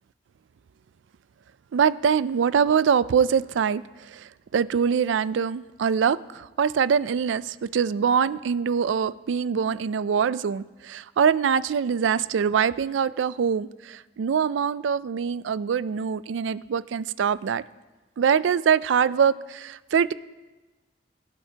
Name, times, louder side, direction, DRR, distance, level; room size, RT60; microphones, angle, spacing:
voice 1, 1.7-17.6 18.2-20.1, right 7 dB, 75° right, 17 dB, 0.4 m, -24 dB
17.0 x 11.5 x 2.8 m, 1.2 s
head